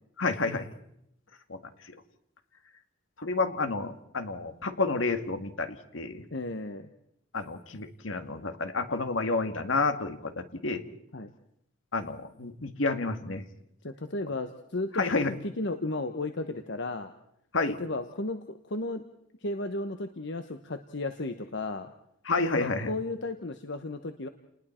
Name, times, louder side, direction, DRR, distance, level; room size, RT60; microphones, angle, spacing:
voice 1, 0.2-0.7 1.5-1.6 3.2-6.2 7.3-10.8 11.9-13.4 14.9-15.3 17.5-17.8 22.3-22.9, left 3 dB, 80° left, 8 dB, 1.8 m, -30 dB
voice 2, 6.3-6.9 11.1-11.3 13.8-17.1 17.8-19.0 19.4-21.9 22.4-24.3, left 2 dB, 65° left, 8 dB, 1.1 m, -34 dB
30.0 x 20.0 x 4.4 m, 0.77 s
head